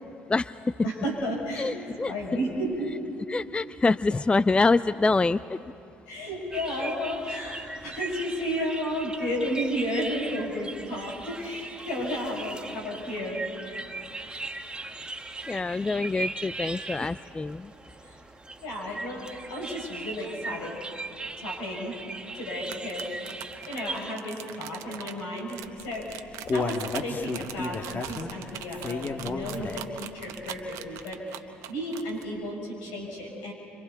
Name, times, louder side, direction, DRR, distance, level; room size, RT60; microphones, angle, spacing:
voice 1, 0.3-0.8 1.6-2.1 3.3-5.7 15.5-17.7, left 3 dB, 20° left, 16 dB, 0.4 m, -25 dB
voice 2, 0.8-1.7 2.0-2.9 6.1-13.4 18.0-18.2 18.6-20.7 21.4-21.9 22.3-23.3 23.7-31.2 31.7-33.5, equal, 80° left, -2 dB, 6.4 m, -33 dB
sound 1, 6.5-24.1, right 3 dB, 15° right, 1.4 m, -39 dB
sound 2, 22.6-32.2, right 12 dB, 75° right, 1.0 m, -41 dB
Human voice, 25.9-30.0 30.4-30.5 31.0-31.1, left 3 dB, 40° left, 1.8 m, -32 dB
29.5 x 26.5 x 4.1 m, 2.7 s
hypercardioid pair, 60°, 5 cm